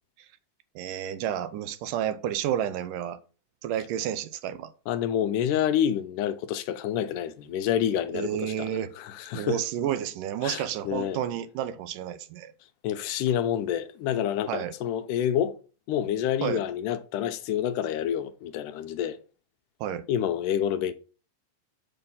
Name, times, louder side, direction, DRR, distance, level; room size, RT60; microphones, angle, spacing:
voice 1, 0.8-3.2 3.6-4.7 8.1-8.9 9.3-12.5 14.5-14.7 16.4-16.6 19.8-20.1, right 10 dB, 85° right, 2.3 m, -30 dB
voice 2, 4.9-8.7 9.0-9.6 10.4-11.2 12.8-15.6 15.9-19.2 20.1-20.9, left 10 dB, 80° left, 2.1 m, -28 dB
6.9 x 5.6 x 5.5 m
omnidirectional pair, 3.8 m